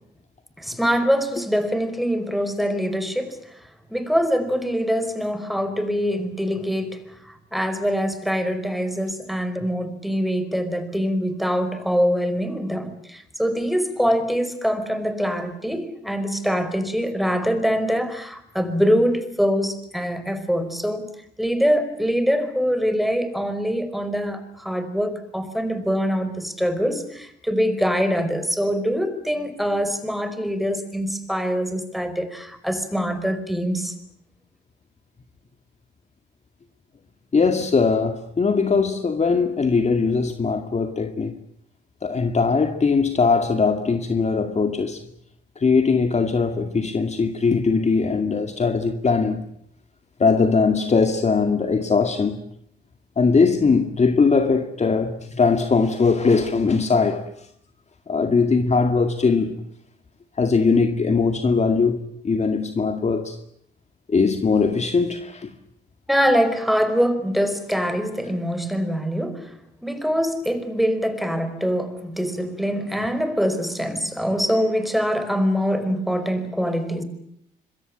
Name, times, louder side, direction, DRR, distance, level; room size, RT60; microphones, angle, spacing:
voice 1, 0.6-3.4 3.9-21.1 21.4-33.9 66.1-69.5 69.8-77.0, equal, ahead, 5.0 m, -24 dB
voice 2, 37.3-41.3 42.0-45.0 45.6-49.5 50.2-52.4 53.2-57.3 58.1-59.6 60.4-63.4 64.1-65.5, left 4 dB, 35° left, 2.2 m, -20 dB
26.0 x 22.5 x 8.8 m
cardioid pair, 90°, 20 cm